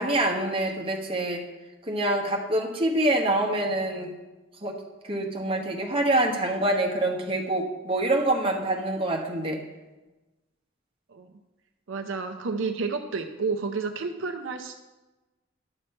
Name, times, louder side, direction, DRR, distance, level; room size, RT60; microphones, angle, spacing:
voice 1, 0.0-1.4 1.9-4.1 4.6-4.7 5.1-9.6, right 1 dB, 30° right, 1 dB, 1.2 m, -26 dB
voice 2, 11.9-14.8, right 4 dB, 70° right, 6 dB, 0.6 m, -30 dB
11.0 x 6.6 x 4.4 m, 1.1 s
head